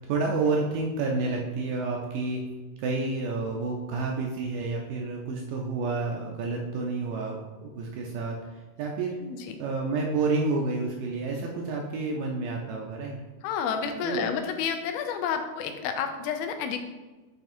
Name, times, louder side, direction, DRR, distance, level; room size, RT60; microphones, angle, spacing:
voice 1, 0.0-2.4 2.8-9.1 9.6-13.2 14.0-14.3, right 3 dB, 80° right, 0 dB, 2.1 m, -29 dB
voice 2, 9.2-9.6 13.4-16.9, left 7 dB, 85° left, 6 dB, 2.5 m, -30 dB
8.2 x 3.4 x 4.3 m, 1.2 s
omnidirectional pair, 4.4 m